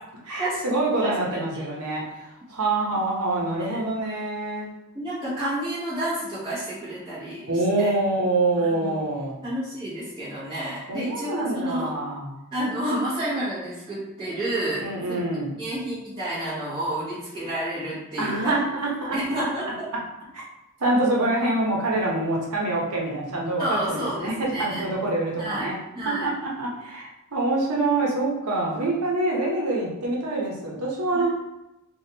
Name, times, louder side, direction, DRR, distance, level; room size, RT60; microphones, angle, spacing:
voice 1, 0.2-4.7 7.5-9.4 10.9-12.4 14.8-15.5 18.2-19.4 20.8-25.8 26.0-31.3, right 2 dB, 85° right, -3 dB, 0.9 m, -26 dB
voice 2, 4.9-7.9 8.6-9.0 9.4-11.9 12.5-15.2 15.6-18.5 19.1-19.9 23.6-24.8 25.4-25.7 25.9-26.3 31.1-31.3, right 1 dB, 20° right, -12 dB, 1.0 m, -30 dB
3.3 x 2.4 x 2.8 m, 0.91 s
head